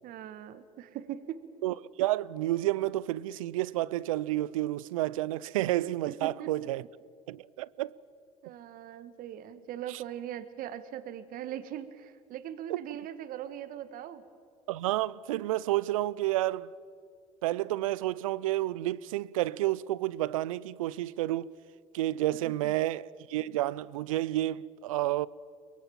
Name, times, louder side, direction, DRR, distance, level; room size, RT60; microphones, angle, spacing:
voice 1, 0.0-1.5 6.1-6.7 8.4-14.2, right 11 dB, 60° right, 1.3 m, -40 dB
voice 2, 1.6-6.8 7.3-8.0 9.9-10.0 12.7-12.8 14.7-16.7 17.4-21.5 21.9-25.3, right 15 dB, 85° right, 0.5 m, -30 dB
23.5 x 22.5 x 7.4 m
hypercardioid pair, 70°, 17 cm